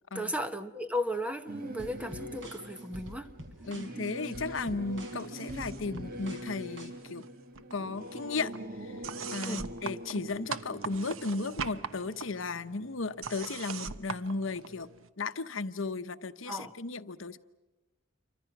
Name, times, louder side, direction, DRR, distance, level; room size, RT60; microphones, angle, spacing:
voice 1, 0.1-3.3 9.5-9.7 16.5-16.7, equal, 5° right, 1.0 m, -35 dB
Singing / Musical instrument, 1.5-13.3, right 1 dB, 45° right, 1.8 m, -44 dB
sound 1, 1.8-6.9, equal, 65° right, 4.7 m, -47 dB
voice 2, 3.6-7.3 7.7-9.1 9.3-14.9 15.2-17.4, left 3 dB, 75° left, 0.9 m, -35 dB
sound 2, 5.2-6.0 6.3-7.3 7.6-15.1, right 5 dB, 85° right, 1.0 m, -42 dB
28.5 x 25.5 x 6.0 m
head